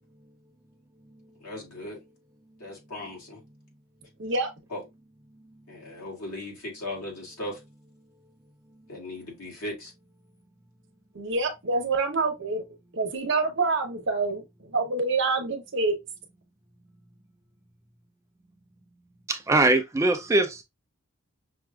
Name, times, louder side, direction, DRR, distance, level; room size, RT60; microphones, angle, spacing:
voice 1, 1.4-2.0 2.6-3.4 4.7-4.8 5.7-7.6 8.9-9.9, left 1 dB, 85° left, 1.9 m, -37 dB
voice 2, 11.1-12.6 12.9-15.9, right 3 dB, 55° right, 0.8 m, -26 dB
voice 3, 19.3-20.6, right 2 dB, 15° right, 0.3 m, -22 dB
5.7 x 2.4 x 2.3 m
head